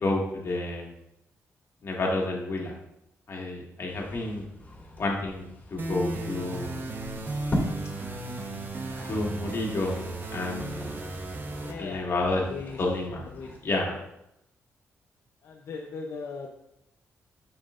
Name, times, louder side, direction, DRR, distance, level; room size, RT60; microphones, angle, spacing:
voice 1, 0.0-0.9 1.8-2.7 3.3-4.4 5.0-6.8 9.1-10.0 10.3-11.0 11.8-12.5 12.8-13.2 13.6-13.9, left 2 dB, 55° left, -2 dB, 1.9 m, -30 dB
sound 1, 3.9-13.6, left 1 dB, 30° left, 2.2 m, -40 dB
sound 2, 5.8-11.7, right 2 dB, 40° right, 1.0 m, -35 dB
voice 2, 11.6-12.8 13.3-13.5 15.4-16.5, left 4 dB, 80° left, 0 dB, 0.7 m, -39 dB
7.9 x 6.0 x 2.6 m, 0.83 s
cardioid pair, 85°, 5 cm